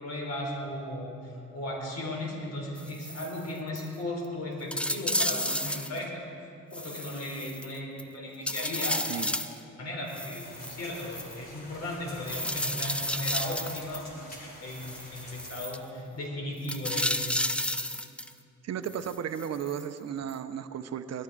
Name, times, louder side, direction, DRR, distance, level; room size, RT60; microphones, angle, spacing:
voice 1, 0.0-6.2 6.7-9.0 9.8-17.3, left 1 dB, 55° left, 0 dB, 4.2 m, -36 dB
sound 1, 2.8-3.4 3.8-3.9 4.2-4.3 4.7-6.0 6.7-8.0 8.5-9.6 10.1-11.4 12.3-14.0 14.7-15.8 16.6-18.3 18.8-19.8 20.3-20.4, left 1 dB, 5° left, 0.6 m, -32 dB
sound 2, 10.4-15.5, left 1 dB, 30° left, 3.7 m, -48 dB
voice 2, 18.6-21.2, right 8 dB, 60° right, 10 dB, 0.8 m, -34 dB
19.5 x 13.5 x 4.9 m, 2.5 s
cardioid pair, 90°, 30 cm